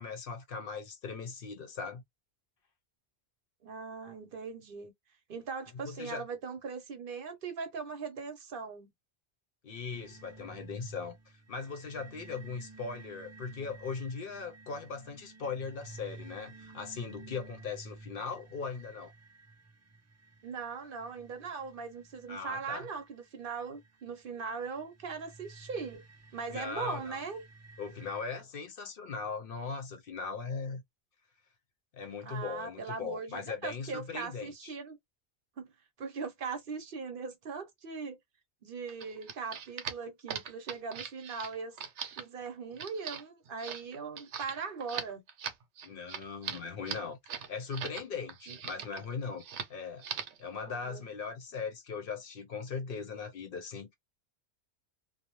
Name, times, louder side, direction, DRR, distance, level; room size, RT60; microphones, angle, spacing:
voice 1, 0.0-2.0 5.8-6.3 9.6-19.1 22.3-22.9 26.5-27.2 27.8-30.8 31.9-34.7 45.8-49.4 49.7-50.1 50.4-53.9, left 5 dB, 60° left, 0.8 m, -39 dB
voice 2, 3.6-4.9 5.3-8.9 20.4-26.0 26.3-27.4 32.2-35.0 35.6-35.7 36.0-38.2 38.6-41.8 42.2-45.2 48.5-48.6 50.7-51.1, right 5 dB, 55° right, 0.8 m, -40 dB
sound 1, 9.9-28.2, right 3 dB, 25° right, 0.3 m, -53 dB
sound 2, 38.9-48.0 48.3-49.1 49.4-49.7 50.0-50.4, right 7 dB, 85° right, 0.9 m, -40 dB
2.5 x 2.0 x 2.9 m
omnidirectional pair, 1.1 m